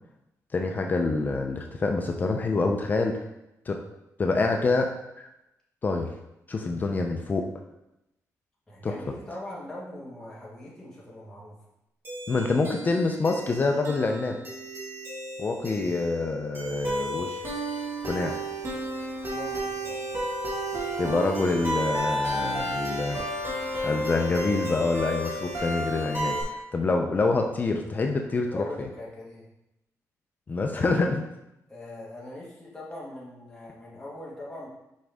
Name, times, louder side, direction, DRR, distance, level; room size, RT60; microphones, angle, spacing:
voice 1, 0.5-3.2 3.7-3.8 4.2-4.9 5.2-5.3 5.8-6.1 6.5-7.5 8.8-8.9 12.3-14.4 15.4-17.4 18.0-18.3 21.0-23.2 23.8-28.6 30.5-31.2, left 3 dB, 30° left, 3 dB, 0.5 m, -26 dB
voice 2, 8.7-11.5 19.3-20.1 28.4-29.5 31.7-34.7, left 1 dB, 10° left, -7 dB, 1.5 m, -41 dB
sound 1, 12.0-26.4, right 1 dB, 35° right, 1.7 m, -32 dB
6.2 x 5.1 x 3.5 m, 0.88 s
wide cardioid pair, 155°, 6 cm